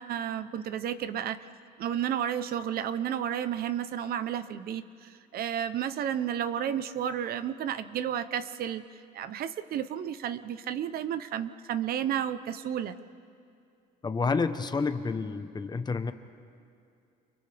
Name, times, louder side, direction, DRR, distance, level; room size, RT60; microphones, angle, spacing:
voice 1, 0.0-1.5 1.8-8.8 9.1-13.0, right 9 dB, 65° right, 13 dB, 0.8 m, -32 dB
voice 2, 14.0-16.1, left 4 dB, 25° left, 9 dB, 1.0 m, -29 dB
30.0 x 28.5 x 3.5 m, 2.5 s
cardioid pair, 110°, 17 cm